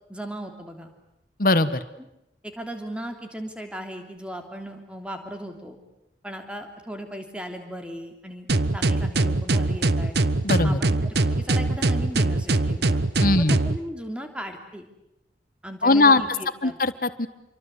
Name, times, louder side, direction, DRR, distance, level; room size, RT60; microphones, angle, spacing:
voice 1, 0.1-0.9 2.4-5.8 6.2-8.5 8.7-10.2 10.6-13.0 13.4-14.9 15.6-16.8, equal, 5° right, 5 dB, 3.2 m, -37 dB
voice 2, 1.4-1.8 10.4-10.8 13.2-13.6 15.8-16.2 16.6-17.3, left 2 dB, 50° left, 13 dB, 1.5 m, -20 dB
sound 1, 8.5-13.8, right 2 dB, 65° right, 1.1 m, -22 dB
28.5 x 24.5 x 8.4 m, 0.87 s
head